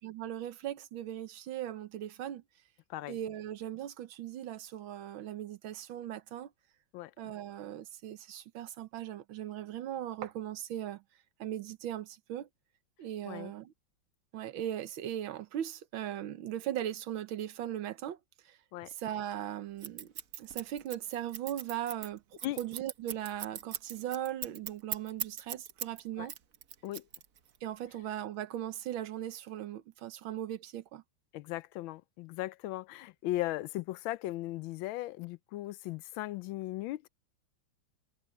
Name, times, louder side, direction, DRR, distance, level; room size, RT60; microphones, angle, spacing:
voice 1, 0.0-2.4 3.1-6.5 7.2-11.0 11.4-12.5 13.0-13.7 14.3-18.2 18.5-18.6 18.9-26.3 27.6-31.0, right 11 dB, 85° right, 1.7 m, -39 dB
voice 2, 6.9-7.3 13.3-13.5 18.7-18.9 22.4-22.6 26.2-26.3 26.8-27.0 31.3-37.1, left 16 dB, 85° left, 1.4 m, -37 dB
Scissors, 19.8-26.0 26.3-27.6, right 8 dB, 50° right, 1.2 m, -39 dB
omnidirectional pair, 2.2 m